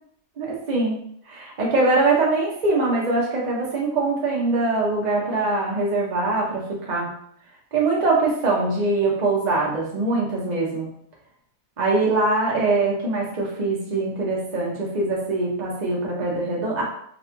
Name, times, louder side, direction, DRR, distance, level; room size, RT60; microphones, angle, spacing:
voice 1, 0.4-1.0 1.3-7.1 7.7-10.9 11.8-16.8, right 3 dB, 55° right, -3 dB, 0.4 m, -23 dB
3.9 x 2.6 x 4.4 m, 0.69 s
omnidirectional pair, 1.9 m